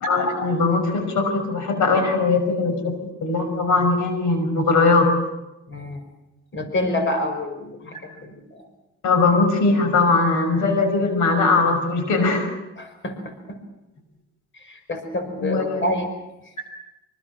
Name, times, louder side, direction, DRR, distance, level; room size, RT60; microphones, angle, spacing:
voice 1, 0.0-5.1 9.0-12.5 15.4-15.6, left 3 dB, 75° left, 7 dB, 5.8 m, -20 dB
voice 2, 5.7-6.0 6.5-8.7 12.8-13.6 14.5-16.1 16.4-16.5, left 1 dB, 40° left, 7 dB, 5.5 m, -28 dB
26.0 x 26.0 x 6.1 m, 0.94 s
cardioid pair, 90°, 30 cm